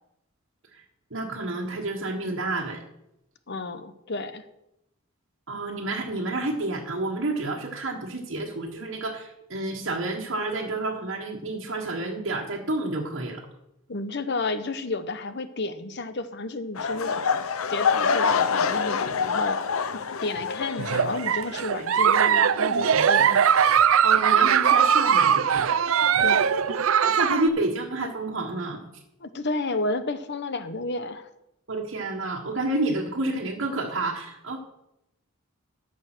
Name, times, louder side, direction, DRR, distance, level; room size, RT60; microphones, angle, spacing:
voice 1, 1.1-2.8 5.5-13.4 24.0-25.7 27.1-28.8 31.7-34.6, right 2 dB, 60° right, -2 dB, 1.5 m, -29 dB
voice 2, 3.5-4.4 13.9-17.4 17.7-19.6 19.9-23.4 26.2-26.5 29.2-31.3, left 2 dB, 55° left, 11 dB, 0.9 m, -31 dB
sound 1, 16.7-21.8 22.0-22.4 22.9-23.0, left 5 dB, 80° left, 0.7 m, -26 dB
Giggle, 20.8-27.5, right 7 dB, 75° right, 0.5 m, -20 dB
13.5 x 7.1 x 6.2 m, 0.86 s
head